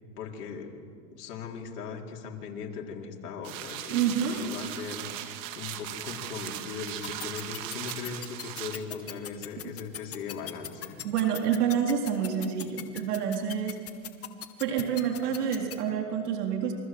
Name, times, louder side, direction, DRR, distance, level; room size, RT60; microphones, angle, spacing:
voice 1, 0.2-0.7 1.1-5.2 5.5-11.0, left 5 dB, 70° left, 0 dB, 4.7 m, -39 dB
sound 1, 3.4-8.8, right 12 dB, 45° right, 2.6 m, -38 dB
voice 2, 3.9-4.4 11.0-13.8 14.6-16.7, right 8 dB, 70° right, 2 dB, 4.0 m, -28 dB
sound 2, 6.9-15.7, left 10 dB, 30° left, 2.3 m, -38 dB
28.0 x 25.0 x 7.9 m, 2.3 s
hypercardioid pair, 120°, 47 cm